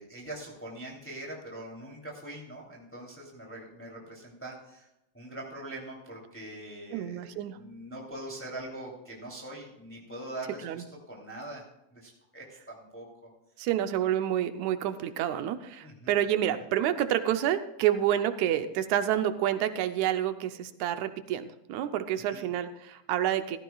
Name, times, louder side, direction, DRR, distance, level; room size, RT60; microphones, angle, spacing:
voice 1, 0.0-4.9 5.1-11.6 11.9-13.3 15.8-16.2 22.3-22.5, right 1 dB, 5° left, -2 dB, 2.7 m, -43 dB
voice 2, 6.9-7.6 10.6-10.8 13.6-23.6, right 11 dB, 80° right, 10 dB, 2.1 m, -28 dB
15.0 x 15.0 x 2.4 m, 0.85 s
omnidirectional pair, 3.3 m